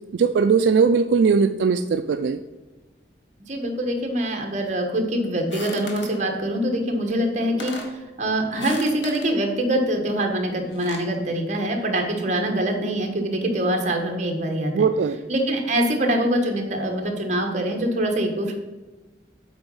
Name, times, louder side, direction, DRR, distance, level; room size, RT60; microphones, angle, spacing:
voice 1, 0.1-2.4 14.7-15.2, right 5 dB, 75° right, 8 dB, 0.3 m, -19 dB
voice 2, 3.5-7.7 8.2-14.9 15.3-18.5, right 1 dB, 40° right, 3 dB, 1.3 m, -24 dB
sound 1, 5.5-6.2 7.1-7.2 7.4-8.0 8.5-9.3 10.5-11.1, left 2 dB, 80° left, 1.2 m, -37 dB
8.1 x 4.1 x 5.3 m, 1.1 s
head